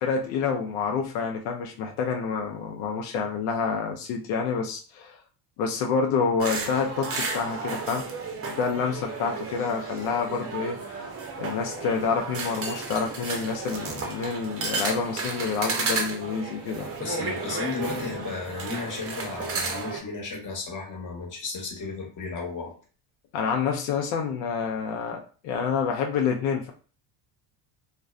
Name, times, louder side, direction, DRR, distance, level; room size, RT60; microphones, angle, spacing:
voice 1, 0.0-5.2 5.6-8.0 8.5-11.0 11.4-16.9 23.3-26.7, left 5 dB, 85° left, 2 dB, 0.6 m, -28 dB
sound 1, 6.4-20.0, right 4 dB, 30° right, 0.6 m, -33 dB
voice 2, 17.0-22.7, left 4 dB, 40° left, 0 dB, 1.0 m, -34 dB
2.4 x 2.1 x 2.3 m, 0.38 s
cardioid pair, 95°, 48 cm